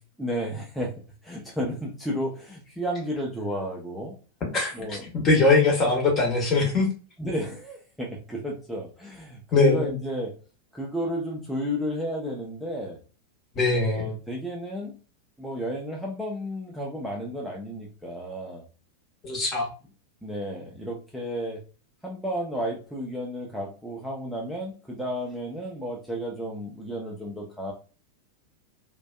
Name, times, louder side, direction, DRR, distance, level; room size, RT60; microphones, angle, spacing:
voice 1, 0.2-4.2 4.7-5.0 7.2-10.3 10.7-13.0 13.7-15.0 15.4-18.6 20.2-21.6 22.0-27.7, equal, ahead, -3 dB, 0.6 m, -32 dB
voice 2, 5.1-6.9 9.5-9.9 13.5-14.1 19.2-19.7, left 3 dB, 30° left, 0 dB, 1.0 m, -21 dB
2.5 x 2.2 x 2.3 m, 0.34 s
figure-of-eight pair, 90°, 0 cm